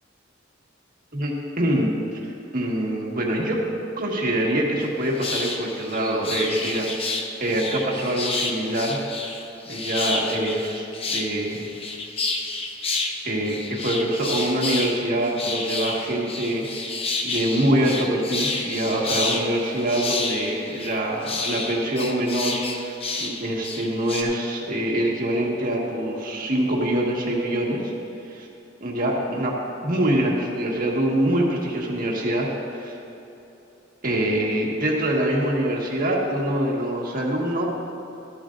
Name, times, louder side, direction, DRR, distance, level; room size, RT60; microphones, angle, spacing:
voice 1, 1.1-3.6 4.0-9.0 9.7-11.7 13.2-16.6 16.9-27.9 28.3-28.5 28.8-29.5 29.8-32.9 34.0-37.7, right 1 dB, 45° right, -2 dB, 1.7 m, -25 dB
sound 1, 4.8-4.9 5.2-13.1 13.4-24.2, left 3 dB, 30° left, 0.8 m, -30 dB
13.5 x 12.5 x 2.6 m, 2.9 s
head